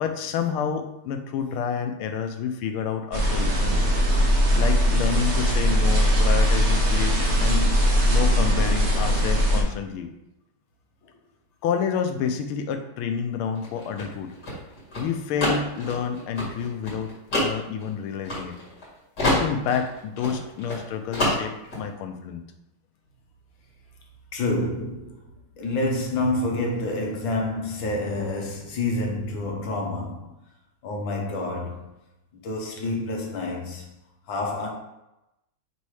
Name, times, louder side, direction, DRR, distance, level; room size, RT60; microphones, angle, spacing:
voice 1, 0.0-3.8 4.5-7.7 8.1-10.1 11.6-14.3 15.0-17.1 17.4-18.5 19.2-22.4, left 7 dB, 90° left, 1.5 m, -29 dB
sound 1, 3.1-9.6, equal, 40° right, 1.2 m, -20 dB
sound 2, 13.6-18.9 19.2-20.8 21.1-21.8, left 1 dB, 50° left, 2.7 m, -27 dB
voice 2, 24.3-25.2 25.6-30.3 30.8-31.8 32.3-33.9 34.3-34.7, left 2 dB, 70° left, 1.8 m, -28 dB
5.5 x 4.2 x 4.8 m
omnidirectional pair, 2.3 m